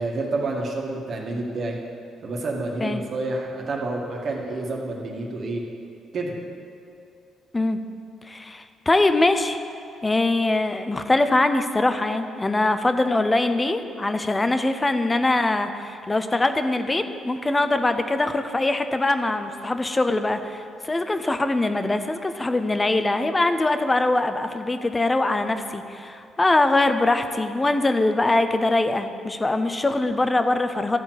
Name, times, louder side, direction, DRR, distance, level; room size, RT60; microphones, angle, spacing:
voice 1, 0.0-1.8 2.2-5.6 6.1-6.3, right 2 dB, 55° right, -1 dB, 1.8 m, -29 dB
voice 2, 8.3-9.6 10.0-31.0, left 2 dB, 20° left, 9 dB, 0.7 m, -22 dB
12.5 x 4.5 x 7.9 m, 2.5 s
cardioid pair, 90°, 0 cm